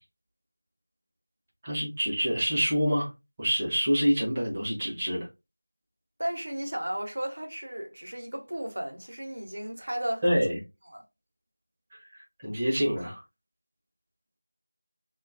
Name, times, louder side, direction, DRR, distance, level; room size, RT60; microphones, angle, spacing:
voice 1, 1.6-3.1 3.4-5.3 10.2-10.6 11.9-13.2, equal, 10° right, 0.6 m, -27 dB
voice 2, 6.2-10.4 10.9-11.0, right 1 dB, 50° right, 0.7 m, -34 dB
2.7 x 2.3 x 2.5 m
figure-of-eight pair, 175°, 0 cm